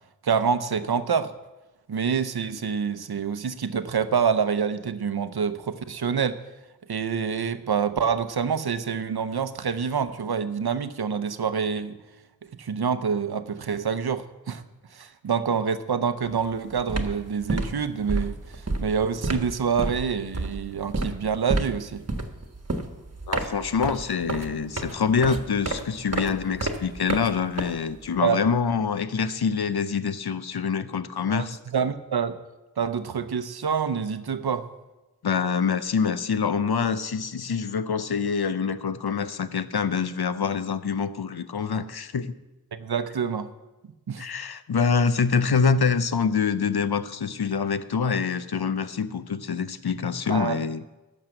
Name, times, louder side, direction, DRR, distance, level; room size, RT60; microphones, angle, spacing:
voice 1, 0.2-1.3 1.9-6.4 6.9-12.0 12.6-14.6 14.9-18.4 18.8-22.0 28.2-28.4 31.3-31.4 31.7-32.4 32.8-34.7 42.7-43.5 44.1-44.3 50.3-50.6, right 6 dB, 90° right, 11 dB, 0.7 m, -26 dB
sound 1, 16.3-16.5 16.8-28.2, right 2 dB, 40° right, 1.3 m, -30 dB
voice 2, 23.3-31.6 35.2-42.3 44.2-50.8, left 5 dB, 85° left, 13 dB, 0.7 m, -25 dB
12.0 x 6.5 x 7.7 m, 1.1 s
wide cardioid pair, 40°, 37 cm